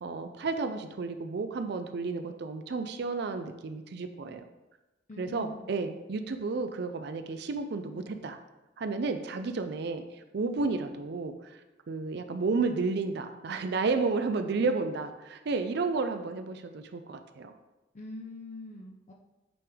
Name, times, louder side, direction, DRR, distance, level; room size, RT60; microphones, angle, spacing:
voice 1, 0.0-4.4 5.2-8.4 8.8-11.6 11.9-17.5, right 4 dB, 60° right, 8 dB, 0.4 m, -32 dB
voice 2, 5.1-5.7 17.9-19.1, left 2 dB, 40° left, 0 dB, 0.5 m, -43 dB
8.5 x 3.4 x 3.5 m, 1.0 s
head